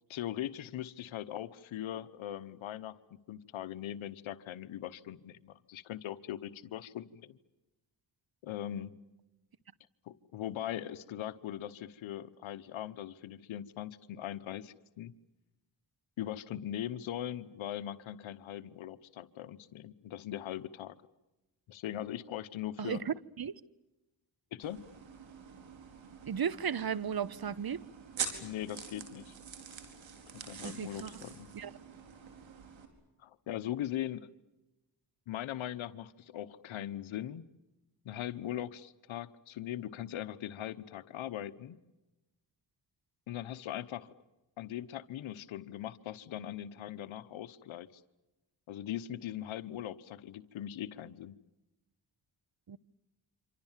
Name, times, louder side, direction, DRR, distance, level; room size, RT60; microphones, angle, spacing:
voice 1, 0.1-2.9 3.3-7.4 8.4-9.0 10.1-15.1 16.2-21.0 21.7-23.0 24.5-24.8 28.4-29.3 30.3-31.5 33.2-34.3 35.3-37.4 38.0-41.8 43.3-44.1 44.6-48.0 48.7-51.4, left 12 dB, 90° left, 1.1 m, -40 dB
voice 2, 22.8-23.6 26.3-27.8 30.6-31.1 31.5-31.7 52.7-52.8, right 7 dB, 50° right, 1.2 m, -35 dB
sound 1, 24.6-32.9, right 7 dB, 80° right, 4.6 m, -45 dB
28.0 x 25.5 x 7.4 m
cardioid pair, 50°, 46 cm